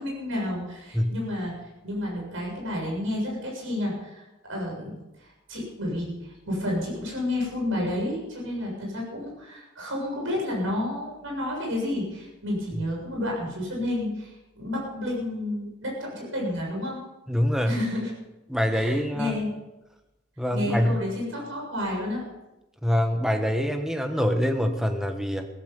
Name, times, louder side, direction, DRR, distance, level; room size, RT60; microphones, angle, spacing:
voice 1, 0.0-1.5 1.8-17.0 17.7-18.1 18.7-19.6 20.5-22.2, left 1 dB, 65° right, -2 dB, 7.1 m, -30 dB
voice 2, 17.3-17.8 18.5-19.4 20.4-21.0 22.8-25.5, equal, ahead, 6 dB, 1.2 m, -25 dB
16.0 x 14.5 x 5.4 m, 0.98 s
head